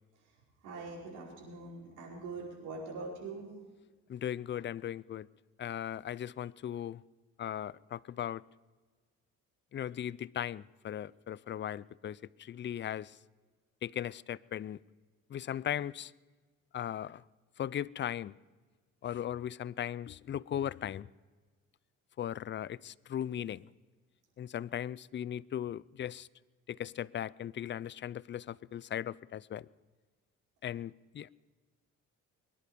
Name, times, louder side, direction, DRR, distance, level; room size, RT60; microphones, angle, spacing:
voice 1, 0.2-3.5, right 3 dB, 90° right, 5.3 m, -43 dB
voice 2, 4.1-5.3 5.6-7.0 7.4-8.4 9.7-13.2 13.8-14.8 15.3-16.1 16.7-17.2 17.6-18.3 19.0-21.1 22.2-23.7 24.4-26.3 26.7-29.7 30.6-31.3, left 10 dB, 40° left, 0.4 m, -38 dB
23.0 x 11.0 x 5.2 m
cardioid pair, 90°, 30 cm